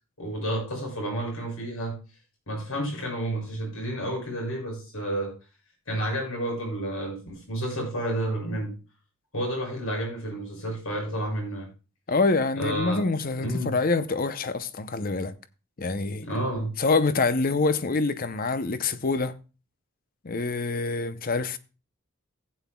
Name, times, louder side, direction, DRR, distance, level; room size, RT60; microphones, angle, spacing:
voice 1, 0.2-2.0 2.5-5.3 5.9-8.7 9.3-11.7 12.6-13.0 13.4-13.7 16.2-16.7, right 1 dB, 80° left, 7.0 m, -30 dB
voice 2, 12.1-15.3 15.8-16.3 16.8-19.3 20.2-21.6, left 3 dB, 40° left, 0.7 m, -26 dB
15.5 x 9.2 x 2.3 m
head